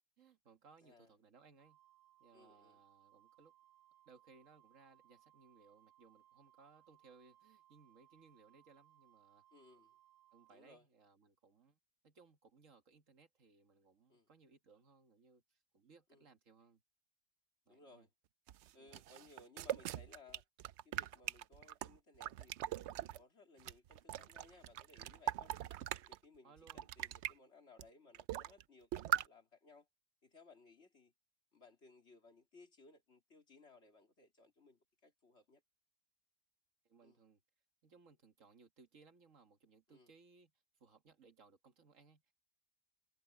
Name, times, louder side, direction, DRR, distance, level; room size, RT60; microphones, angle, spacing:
voice 1, 0.0-1.8 2.2-3.5 4.1-9.4 10.3-11.8 12.0-16.8 17.7-18.1 18.8-19.0 26.4-26.9 36.8-37.4 37.8-40.5 40.8-42.3, right 4 dB, 90° right, 2.1 m, -65 dB
voice 2, 0.8-1.1 2.3-2.8 9.5-10.0 10.5-10.8 14.1-14.3 16.1-16.3 17.7-18.1 18.7-20.4 20.8-25.5 26.0-29.9 30.2-31.1 31.5-35.6 37.0-37.2 39.9-40.1, left 3 dB, 60° left, 3.3 m, -63 dB
Wind instrument woodwind instrument, 1.6-10.6, right 13 dB, 35° right, 2.7 m, -69 dB
sound 1, 18.5-23.2 23.6-26.2 26.6-27.3 27.8-27.9 28.1-28.6 28.9-29.3, right 12 dB, 70° right, 0.8 m, -41 dB
omnidirectional pair, 1.3 m